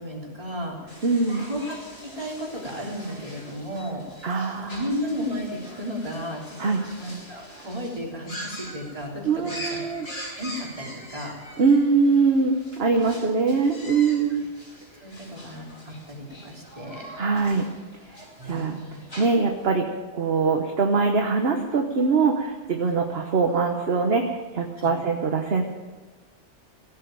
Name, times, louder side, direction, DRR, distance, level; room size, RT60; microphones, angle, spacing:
voice 1, 0.0-4.0 4.7-6.7 7.0-11.3 14.3-14.4 15.0-17.0 18.4-19.0 24.8-24.9, equal, 30° right, -3 dB, 3.6 m, -34 dB
sound 1, 0.9-19.7, equal, 60° left, 4.9 m, -43 dB
voice 2, 1.0-1.5 4.2-4.8 6.6-6.8 9.2-10.1 11.6-14.4 17.2-17.6 18.4-18.8 19.2-19.9 20.1-25.6, right 4 dB, 60° right, 3 dB, 1.3 m, -22 dB
17.0 x 8.7 x 9.0 m, 1.4 s
omnidirectional pair, 1.2 m